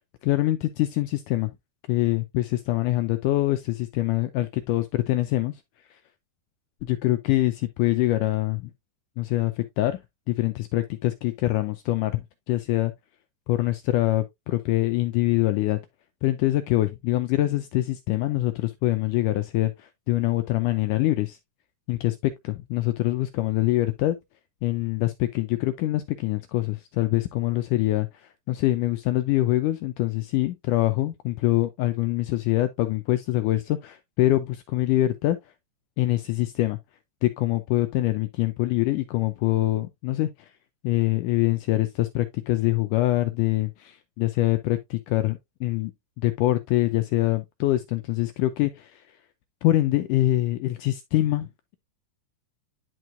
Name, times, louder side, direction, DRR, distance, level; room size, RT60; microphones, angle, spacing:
voice 1, 0.2-1.5 1.9-5.5 5.9-6.0 6.8-8.7 9.2-10.0 10.3-12.9 13.5-15.8 16.2-21.4 21.9-24.2 24.6-28.1 28.5-35.4 36.0-36.8 37.2-40.3 40.8-45.9 46.2-49.0 49.6-51.8, left 16 dB, 80° left, 1.9 m, -24 dB
11.0 x 4.6 x 2.5 m
omnidirectional pair, 4.2 m